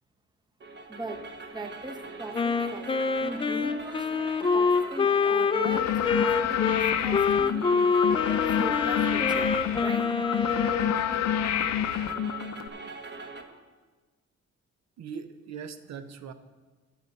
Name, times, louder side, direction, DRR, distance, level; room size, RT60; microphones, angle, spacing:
sound 1, 0.6-13.4, right 3 dB, 35° right, 1.2 m, -42 dB
voice 1, 0.9-2.9 3.2-7.8 8.3-10.1, right 1 dB, 15° right, 7 dB, 0.9 m, -39 dB
Wind instrument woodwind instrument, 2.3-11.0, left 5 dB, 20° left, 0.4 m, -26 dB
sound 2, 5.6-12.7, left 10 dB, 65° left, 0.6 m, -28 dB
voice 2, 15.0-16.3, right 6 dB, 60° right, 10 dB, 0.8 m, -40 dB
12.5 x 7.9 x 4.0 m, 1.3 s
cardioid pair, 90°, 30 cm